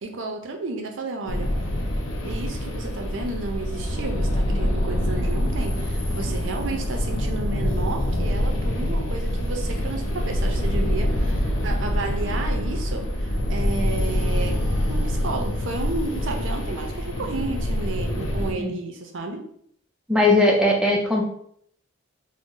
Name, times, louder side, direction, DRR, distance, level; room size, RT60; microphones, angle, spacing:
voice 1, 0.0-1.5 2.2-14.5 14.9-19.4, right 3 dB, 65° right, 3 dB, 0.5 m, -32 dB
sound 1, 1.3-18.5, equal, 80° left, 0.5 m, -25 dB
voice 2, 20.1-21.2, left 2 dB, 5° right, -1 dB, 0.3 m, -19 dB
2.6 x 2.0 x 3.7 m, 0.67 s
head